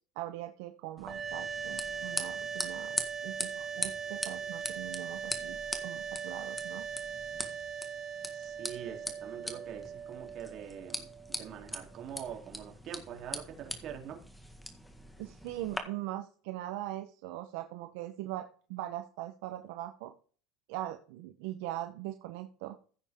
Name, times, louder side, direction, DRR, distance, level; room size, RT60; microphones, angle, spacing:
voice 1, 0.2-6.8 15.2-20.1 20.7-22.8, right 14 dB, 75° right, 7 dB, 1.0 m, -41 dB
sound 1, 1.0-15.8, left 1 dB, 5° left, 1.8 m, -42 dB
sound 2, 1.0-12.1, right 7 dB, 25° right, 2.7 m, -40 dB
voice 2, 8.3-11.1 11.4-14.2, right 9 dB, 45° right, 2 dB, 3.4 m, -44 dB
15.5 x 8.5 x 3.7 m, 0.41 s
supercardioid pair, 135°, 0 cm